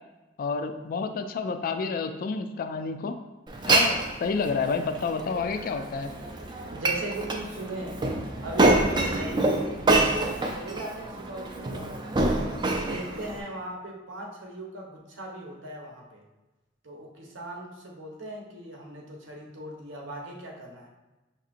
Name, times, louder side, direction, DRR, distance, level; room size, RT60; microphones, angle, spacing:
voice 1, 0.4-3.1 3.6-6.1, left 4 dB, 50° left, 7 dB, 0.3 m, -29 dB
Glass, 3.5-13.4, right 2 dB, 25° right, 0.4 m, -26 dB
voice 2, 6.7-8.0 8.4-9.8 10.2-11.9 12.6-16.2 16.8-20.9, right 1 dB, 80° right, -1 dB, 0.9 m, -38 dB
5.7 x 2.8 x 2.5 m, 1.1 s
head